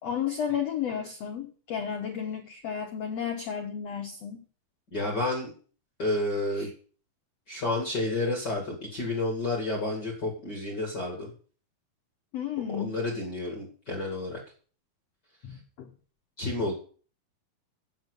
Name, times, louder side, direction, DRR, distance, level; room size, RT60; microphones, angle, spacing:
voice 1, 0.0-4.4 6.6-6.7 12.3-13.0 15.4-15.9, left 8 dB, 90° left, 3 dB, 1.4 m, -33 dB
voice 2, 4.9-5.5 6.0-6.7 7.5-11.3 12.7-14.4 16.4-16.7, left 2 dB, 30° left, -1 dB, 2.3 m, -30 dB
8.9 x 7.5 x 8.2 m, 0.42 s
omnidirectional pair, 4.6 m